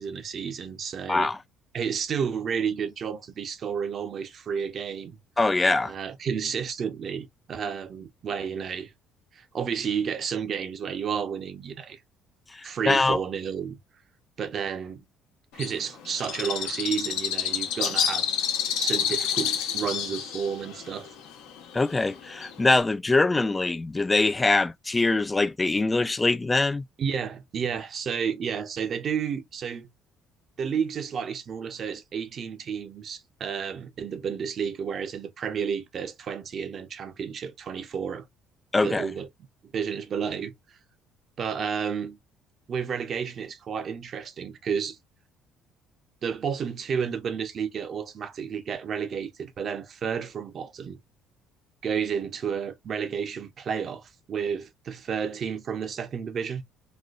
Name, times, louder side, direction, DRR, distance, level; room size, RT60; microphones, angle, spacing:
voice 1, 0.0-1.3 1.7-5.2 5.9-8.9 9.3-12.0 12.6-13.8 14.4-15.0 15.5-18.3 18.8-21.1 27.0-29.9 30.6-38.3 38.8-39.3 39.7-40.8 41.4-42.2 42.7-45.0 46.2-51.0 51.8-56.6, right 7 dB, 45° right, 0.8 m, -31 dB
voice 2, 5.4-5.9 12.5-13.2 21.7-26.9 38.7-39.1, left 3 dB, 15° left, 0.3 m, -23 dB
Bird, 15.6-22.8, left 8 dB, 90° left, 1.0 m, -29 dB
4.2 x 2.2 x 2.4 m
cardioid pair, 105°, 0 cm